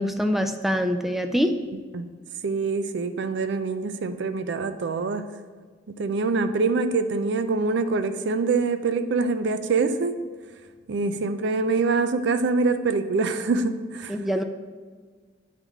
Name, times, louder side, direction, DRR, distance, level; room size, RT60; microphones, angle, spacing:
voice 1, 0.0-1.5 14.1-14.4, equal, ahead, 7 dB, 0.3 m, -24 dB
voice 2, 2.4-5.2 5.9-10.1 10.9-14.1, right 4 dB, 65° right, 10 dB, 0.4 m, -25 dB
9.2 x 3.6 x 3.5 m, 1.6 s
head